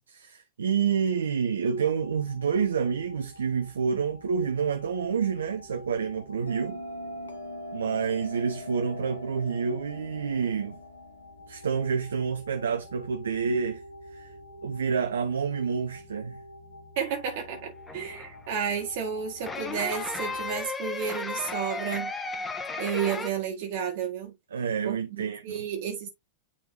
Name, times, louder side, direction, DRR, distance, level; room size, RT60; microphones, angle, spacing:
voice 1, 0.1-6.8 7.7-10.8 11.5-13.8 14.1-14.3 14.6-16.4 24.5-25.7, right 6 dB, 70° right, 0.7 m, -28 dB
sound 1, 1.8-20.7, equal, 55° left, 2.4 m, -48 dB
Bell, 6.5-11.5, left 1 dB, 70° left, 1.2 m, -41 dB
voice 2, 16.9-22.1 22.8-24.3 24.8-26.1, right 7 dB, 50° right, 1.7 m, -32 dB
sound 2, 17.5-18.4 19.4-23.3, left 3 dB, 15° left, 0.9 m, -35 dB
9.7 x 3.6 x 2.7 m
figure-of-eight pair, 90°, 0 cm